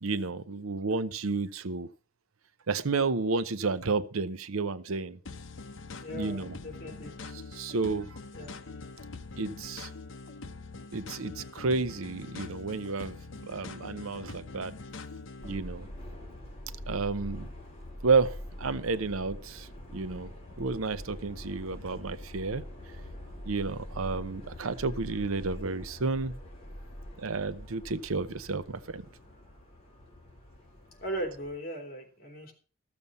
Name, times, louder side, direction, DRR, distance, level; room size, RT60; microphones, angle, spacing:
voice 1, 0.0-1.9 2.7-5.2 6.1-6.6 7.5-8.2 9.4-9.9 10.9-13.2 13.5-14.7 15.4-15.9 16.9-17.5 18.0-20.3 20.6-22.6 23.4-26.3 27.2-29.0, right 4 dB, 80° right, 14 dB, 0.7 m, -31 dB
sound 1, 5.2-15.6, left 3 dB, 65° left, 0.8 m, -44 dB
voice 2, 6.0-7.1 8.3-8.5 31.0-32.5, right 1 dB, 45° left, 3 dB, 3.0 m, -38 dB
Subway metro underground, 15.4-31.5, left 1 dB, 30° left, 3.2 m, -44 dB
14.0 x 7.0 x 5.4 m, 0.38 s
head